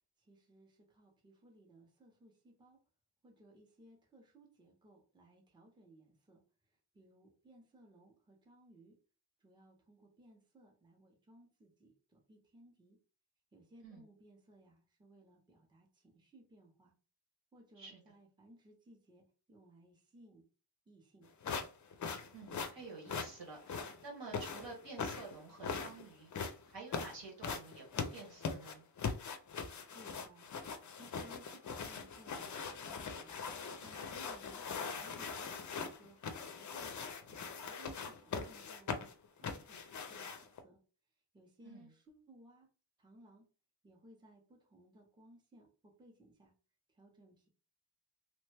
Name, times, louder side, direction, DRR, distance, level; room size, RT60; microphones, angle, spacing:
voice 1, 0.2-2.8 3.2-6.4 6.9-9.0 9.4-13.0 13.5-16.9 17.5-20.4 20.9-21.3 29.9-33.4 33.8-35.5 35.8-40.8 41.3-42.7 43.0-43.5 43.8-46.5 46.9-47.5, right 1 dB, 10° right, 0 dB, 0.6 m, -62 dB
sound 1, 21.4-40.6, left 5 dB, 45° left, 0.4 m, -41 dB
voice 2, 22.3-26.3 26.7-28.8 41.6-41.9, right 3 dB, 70° right, -1 dB, 1.5 m, -50 dB
3.0 x 2.1 x 3.3 m, 0.36 s
wide cardioid pair, 150°, 44 cm